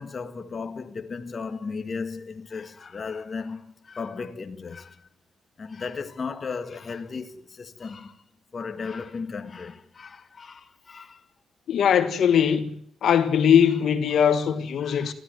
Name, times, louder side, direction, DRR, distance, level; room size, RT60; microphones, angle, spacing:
voice 1, 0.0-5.1 5.6-8.2 8.5-11.2 14.8-15.1, left 5 dB, 40° left, 1.7 m, -35 dB
voice 2, 11.7-12.7 13.0-15.1, left 8 dB, 70° left, 1.7 m, -20 dB
21.5 x 14.5 x 9.3 m
cardioid pair, 100°, 0 cm